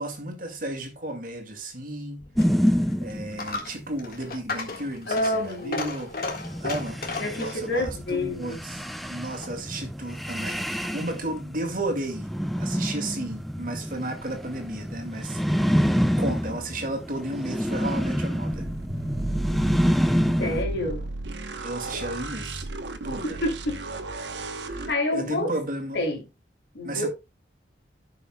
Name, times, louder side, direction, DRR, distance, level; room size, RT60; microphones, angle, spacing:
voice 1, 0.0-2.3 2.6-6.1 6.6-7.0 7.3-8.8 9.1-12.3 12.6-15.4 16.2-18.6 21.6-22.7 23.0-23.4 24.7-26.0 26.8-27.1, right 1 dB, 50° right, 2.0 m, -33 dB
Coin (dropping), 2.2-9.7, left 3 dB, 55° left, 1.7 m, -36 dB
sound 1, 2.4-3.6 6.2-20.6, equal, ahead, 0.5 m, -27 dB
voice 2, 5.1-6.0 7.2-8.6 20.4-21.1 23.4-23.8 24.9-25.5 25.9-26.2 26.7-27.1, left 1 dB, 75° left, 3.0 m, -28 dB
sound 2, 18.5-24.9, right 2 dB, 90° right, 1.0 m, -34 dB
15.5 x 5.7 x 2.3 m
head